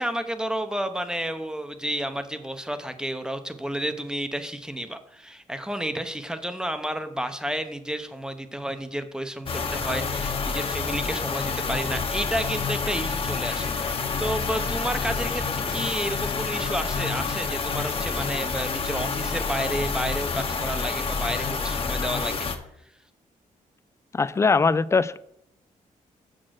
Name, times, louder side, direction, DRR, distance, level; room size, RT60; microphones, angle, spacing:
voice 1, 0.0-22.5, right 1 dB, 5° right, 9 dB, 0.9 m, -31 dB
sound 1, 9.5-22.6, left 5 dB, 40° left, 1.2 m, -28 dB
voice 2, 24.1-25.2, left 4 dB, 20° left, 16 dB, 0.4 m, -21 dB
7.4 x 6.4 x 6.4 m, 0.75 s
cardioid pair, 105°, 14 cm